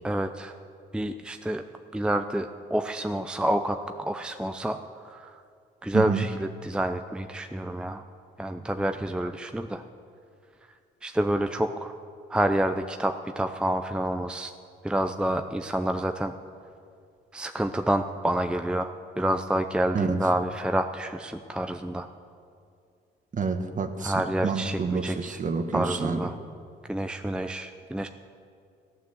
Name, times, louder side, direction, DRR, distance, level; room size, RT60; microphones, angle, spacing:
voice 1, 0.0-0.5 0.9-1.6 1.9-4.8 5.0-5.4 5.8-8.0 8.4-9.8 11.0-12.0 12.3-14.5 14.8-16.3 17.3-22.1 24.0-25.4 25.7-26.3 26.9-28.1, right 1 dB, 5° right, 7 dB, 0.6 m, -28 dB
voice 2, 5.9-6.3 19.9-20.2 23.3-24.1 24.4-26.2, right 5 dB, 40° right, 7 dB, 1.3 m, -28 dB
15.0 x 9.6 x 7.6 m, 2.4 s
cardioid pair, 90°, 20 cm